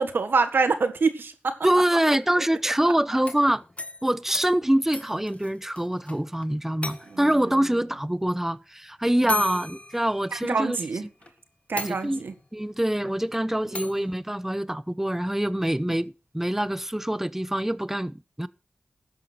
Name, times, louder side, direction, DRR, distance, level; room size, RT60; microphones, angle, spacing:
voice 1, 0.0-1.6 7.1-7.3 9.3-9.4 10.3-11.0 11.7-12.3 13.8-13.9, right 4 dB, 90° right, 1.6 m, -25 dB
voice 2, 1.6-3.6 4.0-10.8 11.8-12.2 12.5-18.5, right 1 dB, 10° right, 0.7 m, -25 dB
sound 1, 3.1-6.2 6.4-6.5 6.8-7.4 8.5-8.6 9.3-10.7 11.2-11.3 11.8-12.5 13.7-14.1, left 3 dB, 40° left, 1.8 m, -36 dB
13.0 x 10.5 x 4.4 m
cardioid pair, 45°, 3 cm